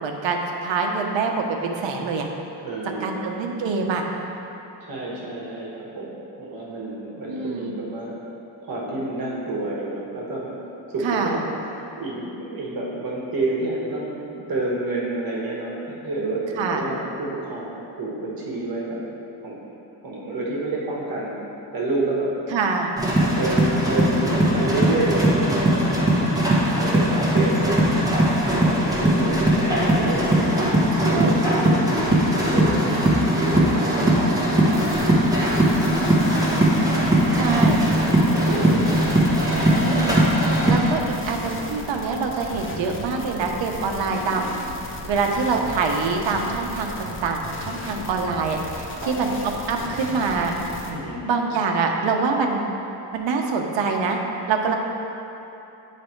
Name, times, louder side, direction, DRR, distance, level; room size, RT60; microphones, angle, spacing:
voice 1, 0.0-2.3 3.0-4.0 7.3-7.7 11.0-11.3 16.6-16.8 22.5-22.9 30.9-31.4 37.3-37.8 39.8-40.3 40.7-44.5 45.0-48.6 49.1-49.3 49.7-50.5 51.2-52.7 53.1-54.2 54.5-54.8, right 4 dB, 75° right, 2 dB, 0.8 m, -25 dB
voice 2, 2.6-3.3 4.8-8.1 8.6-10.5 10.9-19.0 19.4-19.7 20.0-21.4 21.7-22.3 23.1-26.3 26.7-27.8 28.4-30.8 31.1-33.0 33.4-34.8 35.3-36.4 37.1-37.8 38.2-39.2 39.6-39.8 48.9-49.4 50.9-51.2, right 2 dB, 50° right, -4 dB, 1.3 m, -29 dB
sound 1, 23.0-40.9, right 1 dB, 10° right, 1.0 m, -20 dB
sound 2, 34.7-50.9, left 2 dB, 30° left, 0.6 m, -35 dB
9.7 x 3.4 x 4.4 m, 3.0 s
cardioid pair, 150°, 45 cm